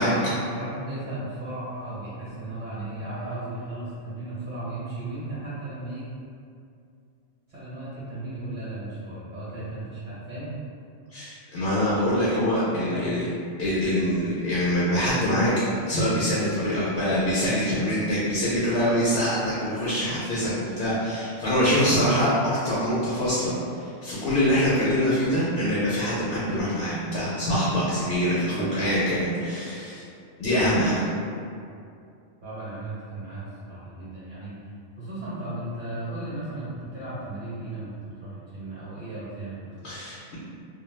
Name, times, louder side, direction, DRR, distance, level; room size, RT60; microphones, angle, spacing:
voice 1, 0.0-6.1 7.5-10.5 12.7-13.1 14.0-14.1 28.5-28.8 32.4-34.5 35.0-37.9 38.2-39.7, right 1 dB, 45° right, -11 dB, 0.9 m, -35 dB
voice 2, 11.1-13.2 13.6-20.5 20.8-22.3 22.6-30.0 30.4-31.0 39.8-40.4, equal, 70° left, -8 dB, 0.8 m, -24 dB
2.3 x 2.3 x 3.2 m, 2.5 s
omnidirectional pair, 1.2 m